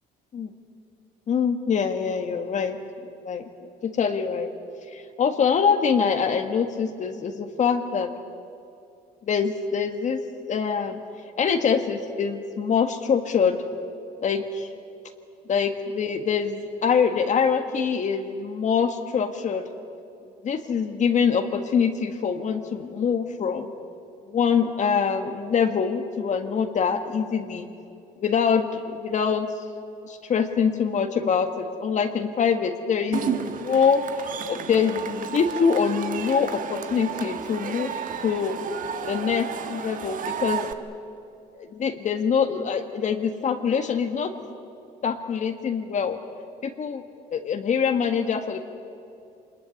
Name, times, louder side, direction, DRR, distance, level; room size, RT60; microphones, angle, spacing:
voice 1, 1.3-2.8 3.0-3.4 3.8-4.5 4.9-8.1 9.3-10.2 10.5-11.0 11.4-13.6 14.2-14.7 15.5-19.6 20.4-23.7 24.3-27.7 28.2-29.5 30.0-37.9 38.2-38.6 39.1-40.6 41.6-44.3 45.0-46.2 46.6-47.0 47.3-48.6, left 6 dB, 45° left, 6 dB, 1.7 m, -24 dB
Cheering / Crowd, 33.1-40.7, right 8 dB, 50° right, 1.5 m, -32 dB
25.0 x 20.5 x 9.7 m, 2.6 s
cardioid pair, 110°, 17 cm